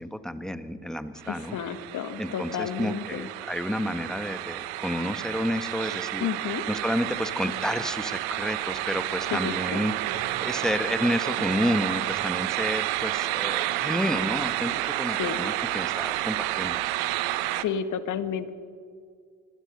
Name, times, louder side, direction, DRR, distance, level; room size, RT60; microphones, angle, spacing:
voice 1, 0.0-1.6 2.2-6.3 6.7-9.9 10.4-16.8, equal, ahead, 10 dB, 1.5 m, -30 dB
sound 1, 1.2-17.6, right 16 dB, 75° right, 1.1 m, -30 dB
voice 2, 1.3-3.3 6.2-6.6 9.3-9.8 15.2-15.4 17.5-18.5, left 8 dB, 55° left, 11 dB, 1.8 m, -31 dB
sound 2, 10.1-15.0, right 5 dB, 50° right, 6.7 m, -46 dB
25.5 x 19.0 x 5.5 m, 2.2 s
hypercardioid pair, 65°, 38 cm